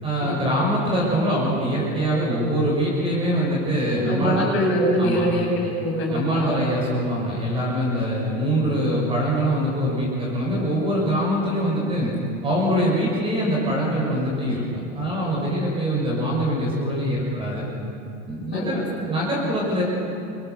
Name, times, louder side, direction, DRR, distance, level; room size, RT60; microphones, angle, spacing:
voice 1, 0.0-4.4 5.0-5.3 6.1-12.1 12.4-17.7 18.3-19.8, equal, 15° right, -4 dB, 6.2 m, -23 dB
voice 2, 4.0-6.5 18.5-19.0, equal, 30° left, -3 dB, 7.6 m, -24 dB
29.0 x 25.0 x 6.9 m, 2.7 s
supercardioid pair, 170°, 40 cm